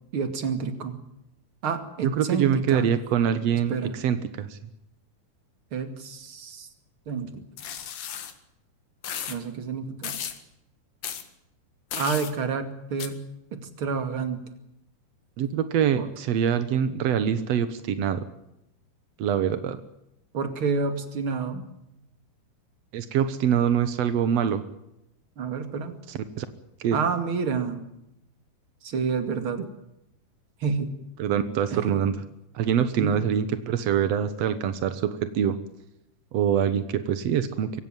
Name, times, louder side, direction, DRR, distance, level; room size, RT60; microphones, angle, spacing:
voice 1, 0.1-1.0 1.6-2.9 3.7-3.9 5.7-6.7 7.1-7.4 9.3-10.3 11.9-13.2 13.5-14.4 16.0-16.1 20.3-21.6 25.4-25.9 26.9-27.8 28.8-29.6 30.6-30.9 31.7-31.9 33.0-33.1, right 5 dB, 40° right, 8 dB, 2.5 m, -29 dB
voice 2, 2.0-4.6 15.4-18.3 19.2-19.8 22.9-24.6 26.1-26.5 26.8-27.0 29.6-29.7 31.2-32.2 32.5-35.6 36.3-37.8, right 8 dB, 80° right, 11 dB, 1.4 m, -24 dB
sound 1, 7.6-8.3 9.0-9.4 10.0-10.4 11.0-11.2 11.9-12.3 13.0-13.1, left 9 dB, 60° left, 3.1 m, -34 dB
24.0 x 16.5 x 9.2 m, 0.85 s
omnidirectional pair, 4.7 m